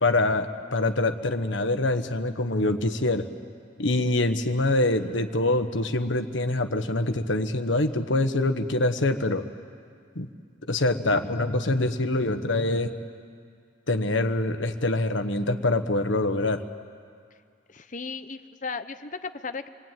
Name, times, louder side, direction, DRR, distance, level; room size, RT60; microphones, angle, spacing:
voice 1, 0.0-3.2 3.8-9.4 10.1-10.3 10.7-12.9 13.9-16.6, left 2 dB, 75° left, 7 dB, 1.4 m, -25 dB
voice 2, 17.7-19.7, left 4 dB, 40° left, 10 dB, 0.9 m, -35 dB
27.0 x 23.0 x 9.3 m, 2.2 s
head